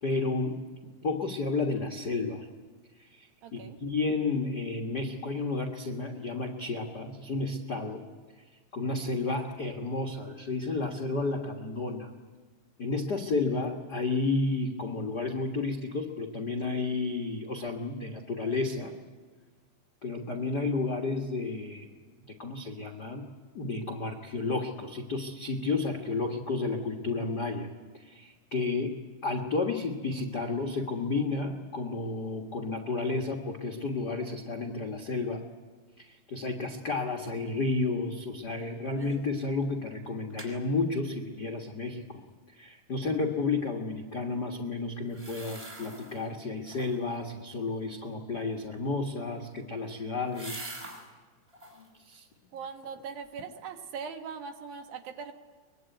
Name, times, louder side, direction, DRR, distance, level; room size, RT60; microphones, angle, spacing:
voice 1, 0.0-0.6 1.0-2.4 3.2-8.0 8.7-12.1 12.8-18.9 20.0-21.9 22.4-23.2 23.5-27.7 28.0-29.0 29.2-35.4 36.0-42.2 42.6-50.8 52.0-52.3, left 3 dB, 70° left, 6 dB, 0.9 m, -32 dB
voice 2, 3.4-3.8 52.5-55.3, right 6 dB, 70° right, 6 dB, 3.1 m, -40 dB
sound 1, 39.0-39.3 39.6-39.7 40.1-40.6 45.1-46.3 46.6-47.2 49.1-51.1 51.5-51.9 52.4-53.0 53.4-53.5, right 1 dB, 15° right, 5.1 m, -45 dB
23.5 x 21.5 x 9.3 m, 1.4 s
omnidirectional pair, 4.6 m